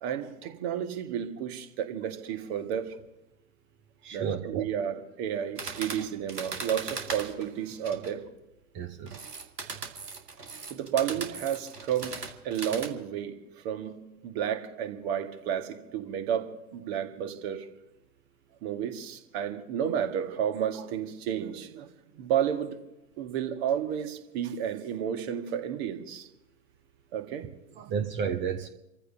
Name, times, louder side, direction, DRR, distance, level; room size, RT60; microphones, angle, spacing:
voice 1, 0.0-3.0 4.1-8.2 10.7-12.2 12.4-13.4 13.6-14.0 14.2-17.7 18.6-21.9 22.2-22.8 23.2-26.3 27.1-27.5 27.8-27.9, right 9 dB, 40° right, 6 dB, 1.9 m, -31 dB
voice 2, 4.0-4.6 8.7-9.3 27.9-28.7, right 7 dB, 25° right, 8 dB, 1.0 m, -32 dB
sound 1, 5.6-8.1 9.1-12.9, right 4 dB, 80° right, 2.0 m, -39 dB
29.0 x 14.5 x 2.9 m, 0.91 s
figure-of-eight pair, 105°, 46 cm